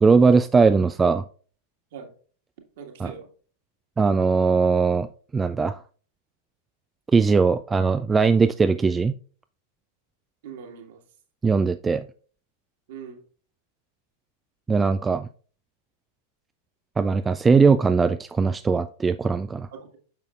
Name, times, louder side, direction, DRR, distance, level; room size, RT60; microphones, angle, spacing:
voice 1, 0.0-1.2 3.0-3.1 4.0-5.1 5.3-5.8 7.1-9.2 11.4-12.1 14.7-15.3 17.0-19.7, right 4 dB, 15° right, 10 dB, 0.3 m, -20 dB
voice 2, 2.8-3.3 10.4-11.0 12.9-13.2 19.7-20.0, right 6 dB, 55° right, 3 dB, 1.8 m, -41 dB
9.1 x 6.6 x 2.5 m, 0.40 s
figure-of-eight pair, 90°, 0 cm